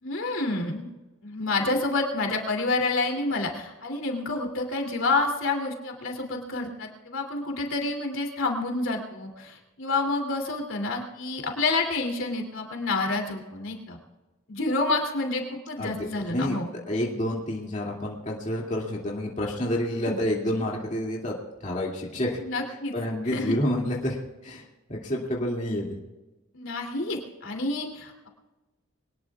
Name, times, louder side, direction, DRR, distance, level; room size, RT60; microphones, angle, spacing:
voice 1, 0.0-0.9 1.2-14.0 14.5-16.7 20.0-20.2 22.4-22.9 23.3-23.5 26.5-28.3, left 3 dB, 70° left, 2 dB, 2.9 m, -28 dB
voice 2, 15.8-16.6 16.9-22.4 22.9-26.0, left 1 dB, 35° left, -3 dB, 2.5 m, -29 dB
24.0 x 19.5 x 2.4 m, 1.1 s
head